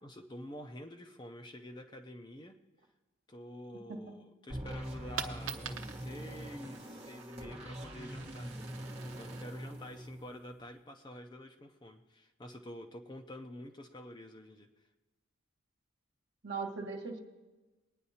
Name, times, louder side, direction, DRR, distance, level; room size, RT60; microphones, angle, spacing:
voice 1, 0.0-2.6 3.3-8.5 9.0-14.7, left 1 dB, 20° left, 4 dB, 0.5 m, -48 dB
sound 1, 4.5-10.7, right 1 dB, 30° right, 1.2 m, -44 dB
Coin (dropping), 5.1-10.8, right 7 dB, 80° right, 0.9 m, -47 dB
voice 2, 16.4-17.2, right 4 dB, 55° right, 1 dB, 1.4 m, -39 dB
21.5 x 9.6 x 2.8 m, 1.2 s
head